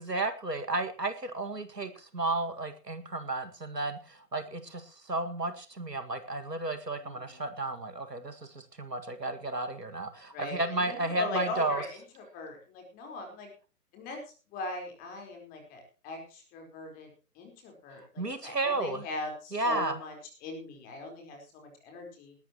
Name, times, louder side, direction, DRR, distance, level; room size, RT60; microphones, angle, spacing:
voice 1, 0.0-11.8 18.2-19.0 19.5-20.0, right 2 dB, 85° right, 10 dB, 2.1 m, -33 dB
voice 2, 7.0-7.4 10.3-13.5 13.9-14.2 14.5-17.1 17.3-20.1 20.4-22.3, left 2 dB, 20° left, 2 dB, 4.3 m, -40 dB
20.0 x 12.5 x 3.0 m, 0.35 s
figure-of-eight pair, 135°, 47 cm